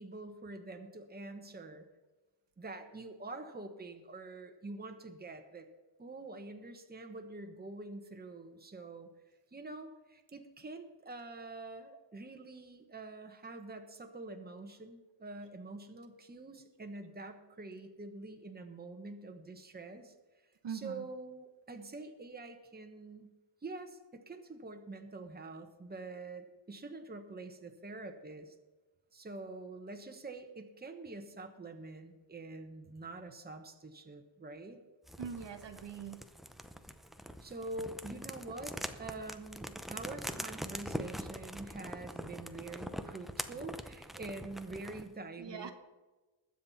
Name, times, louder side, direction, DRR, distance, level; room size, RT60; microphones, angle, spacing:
voice 1, 0.0-1.8 2.6-5.7 6.0-9.1 9.5-20.1 20.7-23.3 23.6-28.5 29.1-34.8 37.4-45.7, right 2 dB, 20° right, 5 dB, 1.2 m, -46 dB
voice 2, 20.6-21.1 35.2-36.2 45.4-45.7, right 7 dB, 60° right, 6 dB, 1.2 m, -42 dB
sound 1, 35.1-45.1, equal, ahead, 0.6 m, -43 dB
20.0 x 7.6 x 4.3 m, 1.2 s
wide cardioid pair, 130°, 48 cm